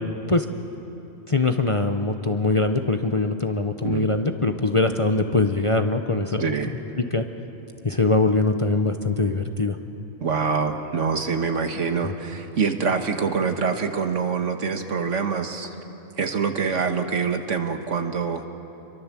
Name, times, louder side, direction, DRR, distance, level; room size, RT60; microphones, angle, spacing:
voice 1, 1.3-6.6 7.0-7.2 7.8-9.8 12.0-12.1, left 3 dB, 30° left, 6 dB, 0.8 m, -22 dB
voice 2, 6.4-6.7 10.2-15.7 16.2-18.4, right 5 dB, 70° right, 6 dB, 1.8 m, -25 dB
26.5 x 23.5 x 7.5 m, 3.0 s
omnidirectional pair, 1.3 m